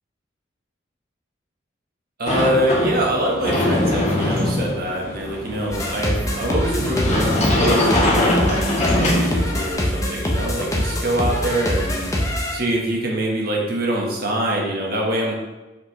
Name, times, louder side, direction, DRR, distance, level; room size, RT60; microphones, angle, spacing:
voice 1, 2.2-12.1 12.5-15.3, right 1 dB, 55° right, -1 dB, 1.3 m, -24 dB
Sliding door, 2.3-9.7, left 1 dB, 40° left, 1.6 m, -22 dB
sound 1, 5.7-12.6, left 1 dB, 15° left, 0.8 m, -24 dB
6.3 x 5.1 x 3.2 m, 1.1 s
head